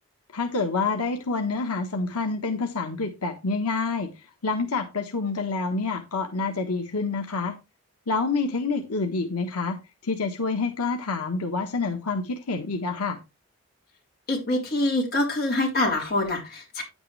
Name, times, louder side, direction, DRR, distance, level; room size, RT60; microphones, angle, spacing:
voice 1, 0.3-4.1 4.4-7.5 8.1-9.8 10.0-13.2, left 3 dB, 90° left, 4 dB, 1.3 m, -27 dB
voice 2, 14.3-16.8, left 2 dB, 45° left, -1 dB, 4.2 m, -25 dB
9.8 x 8.8 x 3.3 m, 0.25 s
head